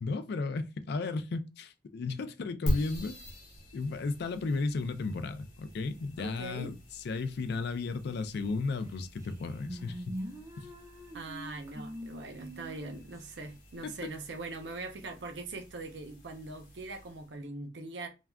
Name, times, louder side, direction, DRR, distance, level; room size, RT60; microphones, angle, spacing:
voice 1, 0.0-3.2 3.7-6.7 7.0-10.2 10.6-10.7, left 3 dB, 65° left, 0.4 m, -34 dB
sound 1, 2.7-17.4, equal, 50° left, 0.9 m, -43 dB
voice 2, 6.2-6.7 11.1-18.1, right 2 dB, 75° right, 0.6 m, -41 dB
sound 2, 8.8-8.9 9.2-13.2, equal, 15° right, 0.5 m, -43 dB
3.4 x 2.3 x 2.2 m
head